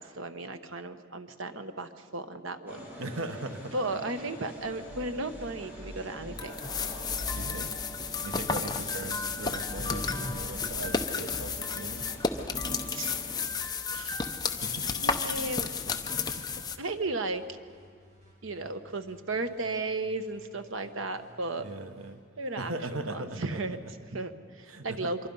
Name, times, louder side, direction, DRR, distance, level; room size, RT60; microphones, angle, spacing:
voice 1, 0.0-2.9 3.7-6.5 12.9-13.2 13.9-14.3 14.8-15.7 16.8-17.4 18.4-21.6 22.4-23.8 24.1-25.2, right 2 dB, 70° right, 9 dB, 1.1 m, -35 dB
Gym ambience -- busy American gym, 2.7-13.3, equal, 10° right, 5.2 m, -45 dB
voice 2, 3.0-3.7 7.3-7.7 8.2-12.1 14.6-14.9 15.7-15.8 16.1-16.6 21.6-22.2 22.6-23.9 24.7-25.1, right 2 dB, 85° right, 8 dB, 1.3 m, -39 dB
sound 1, 4.6-22.1, equal, 35° right, 8.0 m, -52 dB
sound 2, 6.4-16.8, left 5 dB, 20° left, 0.8 m, -32 dB
25.5 x 23.0 x 5.5 m, 2.1 s
head